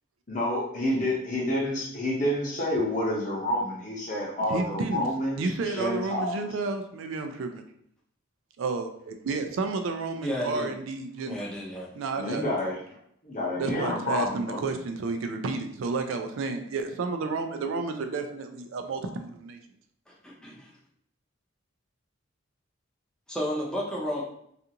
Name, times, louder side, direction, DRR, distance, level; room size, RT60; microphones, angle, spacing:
voice 1, 0.3-6.4 12.2-12.7 13.2-14.7, left 1 dB, 35° left, -3 dB, 0.7 m, -29 dB
voice 2, 4.5-5.1 5.4-7.6 8.6-11.4 12.0-12.4 13.6-19.6, right 3 dB, 70° right, 6 dB, 0.3 m, -31 dB
voice 3, 10.2-10.7 11.3-11.9 20.1-20.7 23.3-24.2, equal, 5° left, -4 dB, 0.5 m, -32 dB
2.5 x 2.4 x 2.8 m, 0.70 s
head